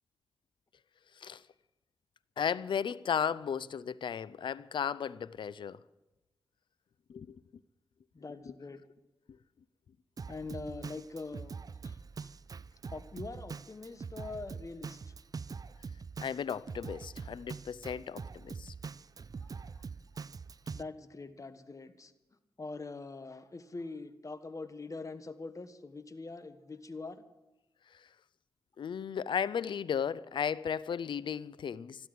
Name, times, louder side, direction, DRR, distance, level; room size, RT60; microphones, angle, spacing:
voice 1, 2.4-5.8 7.1-7.4 16.2-18.7 28.8-32.1, left 7 dB, 70° left, 0.5 m, -35 dB
voice 2, 8.1-8.8 10.3-11.6 11.8-12.3 12.9-15.1 19.4-19.7 20.7-22.1 22.6-27.2, left 3 dB, 40° left, 1.4 m, -43 dB
Drum kit, 10.2-20.8, right 5 dB, 45° right, 0.5 m, -44 dB
13.5 x 12.5 x 7.8 m
cardioid pair, 45°, 8 cm